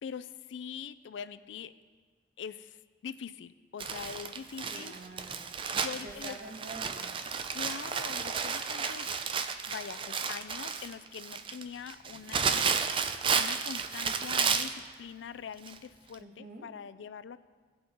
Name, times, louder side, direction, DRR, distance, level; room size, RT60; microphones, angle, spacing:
voice 1, 0.0-1.7 2.4-5.0 5.7-6.4 7.5-9.1 9.7-12.8 13.1-17.4, left 7 dB, 90° left, 15 dB, 0.4 m, -43 dB
Crumpling crinkling, 3.8-14.8 15.7-15.8 16.1-16.2, right 6 dB, 30° right, 0.4 m, -32 dB
voice 2, 4.7-5.5 6.0-7.1 16.2-16.7, right 2 dB, 50° right, 1 dB, 1.3 m, -46 dB
17.0 x 5.8 x 3.9 m, 1.5 s
head